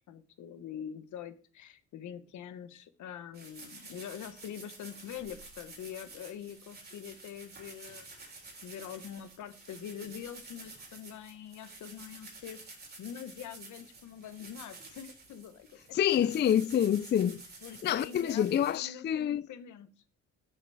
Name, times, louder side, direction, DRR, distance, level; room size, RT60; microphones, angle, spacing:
voice 1, 0.1-8.1 8.6-12.6 13.0-16.3 17.6-18.5 18.7-19.9, left 9 dB, 75° left, 1.2 m, -44 dB
sound 1, 3.3-18.8, right 3 dB, 35° right, 3.7 m, -51 dB
voice 2, 15.9-17.4 17.8-19.5, left 10 dB, 35° left, 0.4 m, -27 dB
7.2 x 7.0 x 4.8 m
cardioid pair, 90°, 30 cm